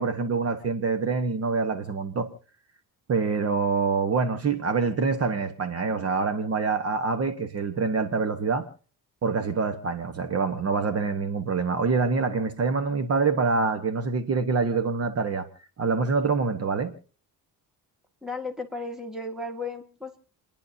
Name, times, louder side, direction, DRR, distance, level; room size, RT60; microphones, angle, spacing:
voice 1, 0.0-2.3 3.1-8.6 9.2-15.5 15.8-16.9, right 4 dB, 40° right, 1.3 m, -25 dB
voice 2, 18.2-20.2, left 2 dB, ahead, 1.9 m, -34 dB
30.0 x 10.5 x 2.7 m
cardioid pair, 155°, 38 cm